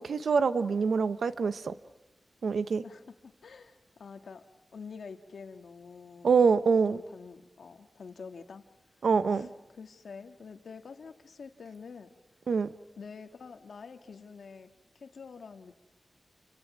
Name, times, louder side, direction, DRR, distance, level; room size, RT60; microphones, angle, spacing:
voice 1, 0.0-1.7 2.4-2.8 6.2-7.0 9.0-9.5 12.5-12.7, right 5 dB, 80° right, 12 dB, 1.0 m, -25 dB
voice 2, 2.8-4.5 4.7-6.3 6.9-8.6 9.3-9.5 9.7-12.2 13.0-14.7 15.0-15.8, left 5 dB, 80° left, 6 dB, 1.7 m, -47 dB
30.0 x 25.0 x 6.1 m, 1.0 s
wide cardioid pair, 115°, 0 cm